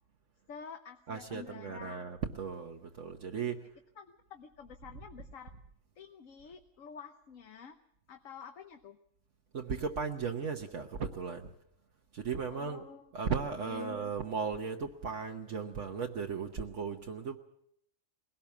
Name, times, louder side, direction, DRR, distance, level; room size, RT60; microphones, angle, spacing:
voice 1, 0.5-2.0 3.5-3.7 4.0-5.5 6.0-7.8 8.1-9.0 12.5-13.1 13.6-14.0, left 6 dB, 80° left, 6 dB, 1.4 m, -49 dB
voice 2, 1.1-3.6 4.9-5.0 9.5-11.5 12.1-12.8 13.1-17.4, right 5 dB, 65° right, 2 dB, 1.4 m, -36 dB
21.0 x 17.5 x 7.2 m, 0.74 s
omnidirectional pair, 1.4 m